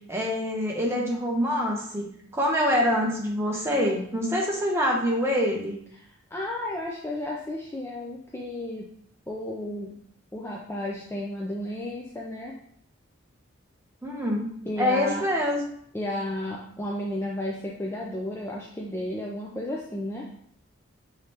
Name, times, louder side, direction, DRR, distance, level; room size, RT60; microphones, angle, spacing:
voice 1, 0.1-2.1 2.3-5.8 14.0-14.5 14.8-15.6, equal, 15° right, -2 dB, 0.8 m, -25 dB
voice 2, 6.0-8.9 9.3-10.0 10.3-12.5 14.7-15.3 15.9-20.3, left 1 dB, 10° left, -3 dB, 0.4 m, -33 dB
5.0 x 3.1 x 2.8 m, 0.66 s
head